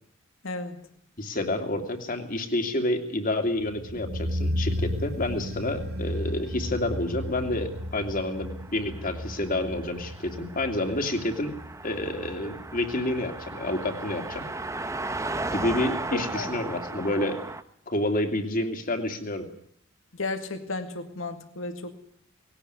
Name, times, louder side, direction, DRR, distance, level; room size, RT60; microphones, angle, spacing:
voice 1, 0.4-0.8 16.1-16.5 20.1-21.9, left 3 dB, 80° left, 7 dB, 2.3 m, -33 dB
voice 2, 1.2-11.5 11.8-14.4 15.5-17.4 17.9-19.4, left 1 dB, 45° left, 5 dB, 2.8 m, -29 dB
sound 1, 3.5-14.4 14.7-14.8, equal, 50° right, 1.5 m, -34 dB
Car passing by, 7.5-17.6, right 2 dB, 15° right, 1.0 m, -36 dB
20.0 x 17.5 x 9.7 m, 0.67 s
head